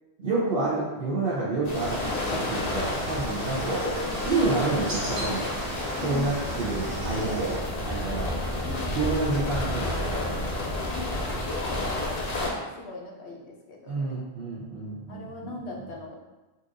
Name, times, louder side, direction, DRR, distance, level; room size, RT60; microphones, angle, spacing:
voice 1, 0.2-3.8 4.2-5.4 6.0-7.6 7.8-8.3 8.9-10.5 13.9-15.5, right 3 dB, 65° right, -8 dB, 0.9 m, -29 dB
sound 1, 1.6-12.5, left 1 dB, 45° left, 0.6 m, -31 dB
sound 2, 1.7-7.6, right 1 dB, 85° right, 1.2 m, -35 dB
voice 2, 6.0-6.5 8.2-9.2 10.0-14.2 15.1-16.1, left 2 dB, 85° left, 0 dB, 0.9 m, -40 dB
4.1 x 2.5 x 2.5 m, 1.1 s
omnidirectional pair, 1.1 m